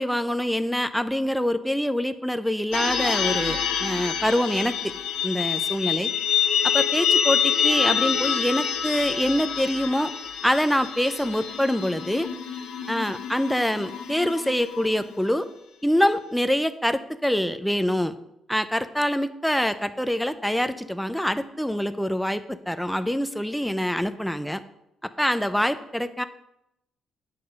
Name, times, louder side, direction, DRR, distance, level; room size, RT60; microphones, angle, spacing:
voice 1, 0.0-4.9 5.2-6.1 6.6-10.1 10.4-12.3 12.9-15.5 15.8-18.1 18.5-24.6 25.0-26.2, equal, ahead, 11 dB, 0.7 m, -25 dB
sound 1, 2.7-15.3, left 8 dB, 90° left, 1.3 m, -27 dB
9.1 x 6.9 x 5.4 m, 0.82 s
cardioid pair, 90°, 0 cm